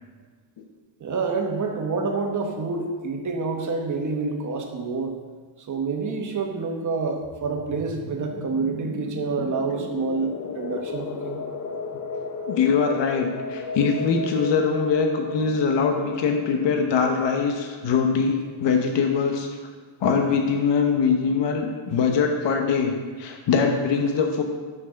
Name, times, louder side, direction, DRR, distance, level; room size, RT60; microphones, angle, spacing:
voice 1, 1.0-5.1 5.7-11.4, right 4 dB, 40° right, 2 dB, 1.3 m, -28 dB
sound 1, 7.2-17.7, left 4 dB, 40° left, 0.7 m, -35 dB
voice 2, 12.5-19.5 20.0-24.4, left 5 dB, 60° left, 3 dB, 1.1 m, -22 dB
7.2 x 6.1 x 6.3 m, 1.5 s
cardioid pair, 140°, 49 cm